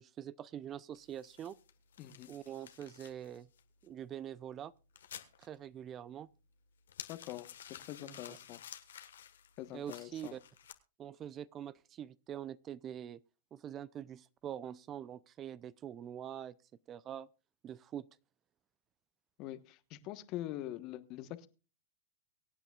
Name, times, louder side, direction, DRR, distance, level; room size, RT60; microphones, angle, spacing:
voice 1, 0.0-1.6 2.3-3.5 3.8-4.7 5.4-6.3 8.0-8.4 9.7-10.4 11.0-13.2 13.5-16.5 16.9-17.3 17.6-18.1, right 10 dB, 30° right, 0.5 m, -44 dB
sound 1, 0.9-10.7, left 9 dB, 80° left, 1.5 m, -54 dB
voice 2, 2.0-2.3 7.1-7.5 7.9-8.6 9.6-10.3 19.4-21.5, left 14 dB, 45° left, 1.2 m, -44 dB
24.0 x 8.9 x 2.4 m
hypercardioid pair, 115°, 0 cm